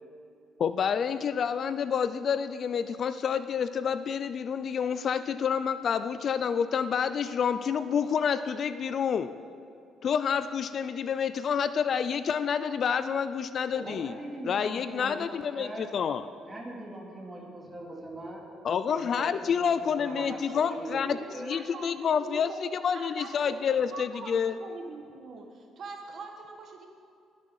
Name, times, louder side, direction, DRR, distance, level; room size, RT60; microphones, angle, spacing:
voice 1, 0.6-9.3 10.0-14.1 14.4-16.2 18.6-22.5 22.8-24.6, left 7 dB, 45° left, 12 dB, 0.4 m, -28 dB
voice 2, 13.7-15.9 16.4-18.4 18.9-21.5, right 1 dB, 20° right, -2 dB, 2.8 m, -41 dB
voice 3, 19.8-20.6 21.0-23.5 23.9-26.9, right 4 dB, 50° right, 3 dB, 1.4 m, -44 dB
20.5 x 8.3 x 4.7 m, 2.6 s
cardioid pair, 135°, 0 cm